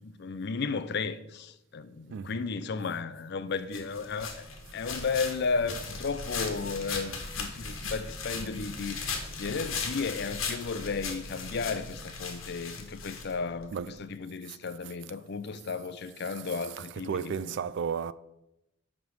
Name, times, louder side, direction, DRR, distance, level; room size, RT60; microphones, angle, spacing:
voice 1, 0.0-4.5 4.7-17.5, left 4 dB, 50° left, 0.5 m, -34 dB
voice 2, 2.1-2.5 13.7-14.1 14.5-15.1 16.2-18.1, right 7 dB, 55° right, 0.3 m, -36 dB
sound 1, 3.7-13.7, left 4 dB, 70° left, 1.4 m, -38 dB
10.5 x 3.6 x 6.3 m
head